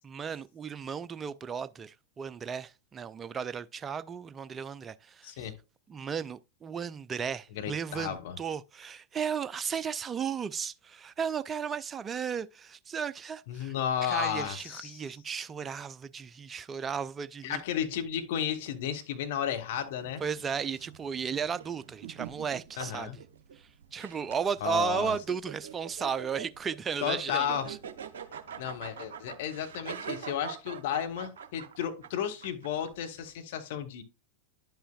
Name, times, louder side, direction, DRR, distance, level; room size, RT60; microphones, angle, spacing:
voice 1, 0.0-5.5 5.9-13.7 14.0-17.6 20.2-23.1 23.9-27.8, right 6 dB, 20° right, 0.4 m, -34 dB
voice 2, 5.2-5.6 7.5-8.4 13.5-15.0 17.4-20.2 22.8-23.2 24.6-25.1 27.0-27.7 28.6-34.0, left 9 dB, 55° left, 1.3 m, -33 dB
sound 1, 19.7-33.3, right 8 dB, 60° right, 0.8 m, -44 dB
11.0 x 5.6 x 2.4 m
figure-of-eight pair, 90°, 0 cm